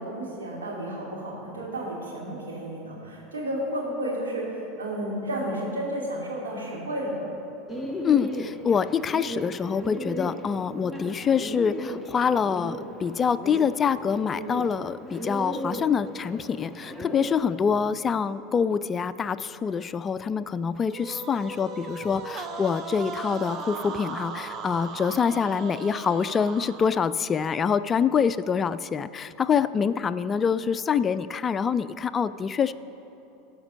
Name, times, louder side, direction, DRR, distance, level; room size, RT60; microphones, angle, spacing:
voice 1, 0.0-7.3, right 1 dB, 90° right, -3 dB, 2.4 m, -32 dB
Bird, 7.7-17.4, equal, 5° right, 1.0 m, -36 dB
voice 2, 8.0-32.7, left 6 dB, 30° left, 15 dB, 0.3 m, -25 dB
sound 1, 20.9-27.2, right 4 dB, 40° right, 0.8 m, -37 dB
13.5 x 5.2 x 6.2 m, 2.8 s
hypercardioid pair, 85°, 0 cm